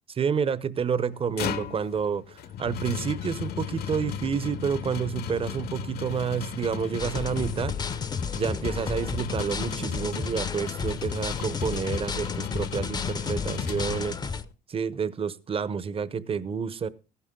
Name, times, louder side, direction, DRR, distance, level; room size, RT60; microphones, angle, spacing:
voice 1, 0.1-7.7 8.3-14.4 14.7-16.9, right 6 dB, 35° right, 0.9 m, -29 dB
sound 1, 1.1-14.5, left 9 dB, 65° left, 1.2 m, -35 dB
sound 2, 7.0-14.4, left 5 dB, 25° left, 0.7 m, -33 dB
15.0 x 11.5 x 3.8 m
cardioid pair, 110°, 17 cm